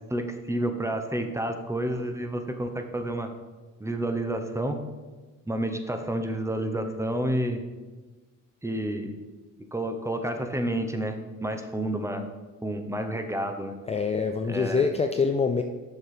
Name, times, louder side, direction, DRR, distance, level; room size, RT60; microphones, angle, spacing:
voice 1, 0.1-3.3 3.8-4.8 5.5-7.6 8.6-9.1 9.7-12.3 12.6-13.8 14.5-14.9, right 1 dB, 10° right, 6 dB, 0.9 m, -30 dB
voice 2, 13.9-15.6, left 5 dB, 20° left, 6 dB, 0.4 m, -25 dB
7.1 x 6.1 x 5.0 m, 1.3 s
cardioid pair, 90°, 30 cm